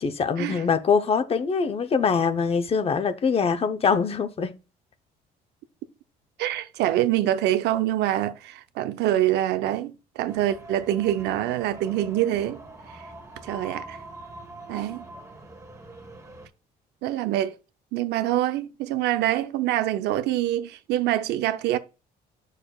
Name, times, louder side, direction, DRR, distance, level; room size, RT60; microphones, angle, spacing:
voice 1, 0.0-4.5, left 5 dB, 35° left, 0.8 m, -23 dB
voice 2, 6.4-12.6 12.9-13.0 13.4-14.0 14.7-15.0 17.0-17.6 17.9-21.8, right 13 dB, 80° right, 0.7 m, -25 dB
sound 1, 10.3-16.5, right 2 dB, 20° right, 1.3 m, -43 dB
8.6 x 6.6 x 2.3 m
cardioid pair, 110°, 17 cm